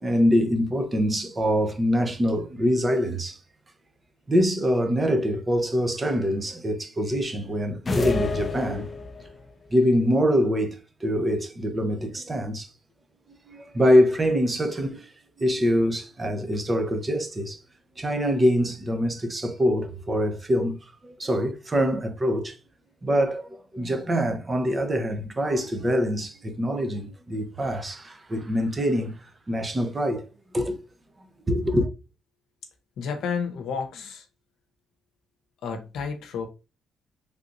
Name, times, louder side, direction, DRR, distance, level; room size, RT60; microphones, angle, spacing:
voice 1, 0.0-3.4 4.3-8.9 9.7-12.7 13.5-15.1 15.4-17.6 18.0-20.8 21.0-22.5 23.0-29.2 29.5-30.3 30.5-30.8 31.5-31.9, equal, 25° right, 0.7 m, -24 dB
sound 1, 7.9-9.4, left 3 dB, 35° left, 0.4 m, -29 dB
voice 2, 33.0-34.2 35.6-36.5, left 6 dB, 80° left, 0.7 m, -31 dB
3.4 x 2.8 x 2.5 m
cardioid pair, 90°, 0 cm